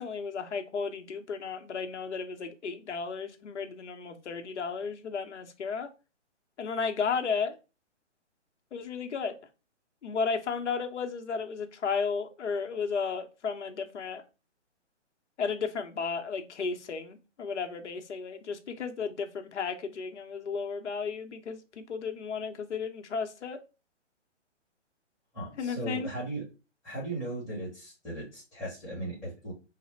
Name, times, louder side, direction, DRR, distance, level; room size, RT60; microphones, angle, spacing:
voice 1, 0.0-5.9 6.6-7.6 8.7-9.4 10.0-14.2 15.4-23.6 25.6-26.1, left 5 dB, 70° left, 0.8 m, -34 dB
voice 2, 25.3-26.4 26.8-29.5, right 1 dB, ahead, 1.2 m, -37 dB
3.3 x 2.1 x 4.2 m
hypercardioid pair, 145°, 36 cm